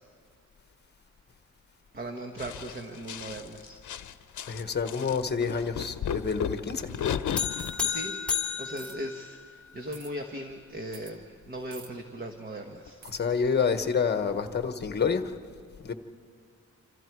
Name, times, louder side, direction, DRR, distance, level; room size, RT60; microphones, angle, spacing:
voice 1, 1.9-3.8 7.8-8.2 8.6-13.0, right 1 dB, 30° right, 4 dB, 1.3 m, -38 dB
sound 1, 2.4-7.8 8.3-8.4, left 8 dB, 70° left, 0.8 m, -34 dB
voice 2, 4.5-6.9 13.0-15.3 15.8-15.9, left 6 dB, 35° left, 8 dB, 1.2 m, -28 dB
sound 2, 7.4-9.8, left 7 dB, 5° left, 2.5 m, -32 dB
sound 3, 7.6-7.9 8.8-9.0 9.9-10.1 10.9-11.1 11.7-11.9 13.0-13.2, right 5 dB, 65° right, 1.6 m, -47 dB
27.5 x 26.5 x 4.7 m, 2.3 s
wide cardioid pair, 180°, 31 cm